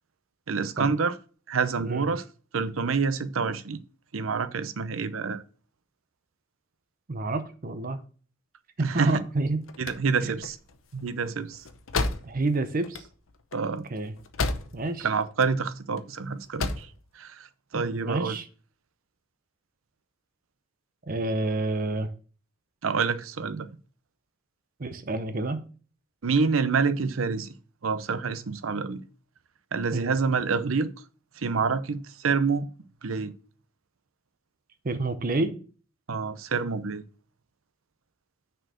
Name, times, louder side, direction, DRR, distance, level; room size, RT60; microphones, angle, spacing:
voice 1, 0.5-1.1 1.5-2.2 2.5-3.8 4.1-5.4 8.8-9.2 9.8-10.6 10.9-11.6 13.5-13.8 15.0-16.9 17.1-17.5 17.7-18.4 22.8-23.7 26.2-27.5 27.8-29.0 29.7-30.9 31.4-32.7 33.0-33.3 36.1-37.0, right 5 dB, 85° right, 0.7 m, -27 dB
voice 2, 7.1-8.0 8.8-9.6 12.2-13.0 13.9-14.1 14.7-15.1 17.7-18.4 21.1-22.1 24.8-25.6 29.9-30.2 34.8-35.6, right 2 dB, 45° right, 0.7 m, -28 dB
sound 1, 9.4-15.0 15.3-16.0 16.4-17.0, left 3 dB, 80° left, 0.8 m, -33 dB
6.4 x 4.5 x 6.1 m
head